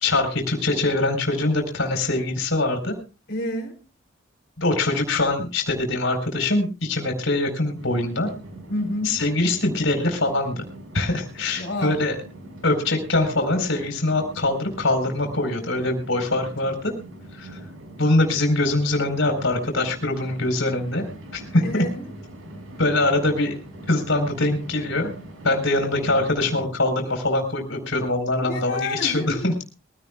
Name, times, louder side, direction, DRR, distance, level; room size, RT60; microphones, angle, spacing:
voice 1, 0.0-3.0 4.6-8.3 9.0-10.6 10.9-12.1 12.6-16.9 17.3-17.6 18.0-21.0 21.3-21.8 22.8-23.5 23.9-25.1 25.4-29.5, left 2 dB, 70° left, 4.3 m, -23 dB
voice 2, 3.3-3.8 8.7-9.2 11.6-12.0 21.6-22.1 28.4-29.6, left 1 dB, 50° left, 4.1 m, -29 dB
sound 1, 7.8-26.7, right 1 dB, 90° right, 5.1 m, -42 dB
22.5 x 16.5 x 2.4 m
head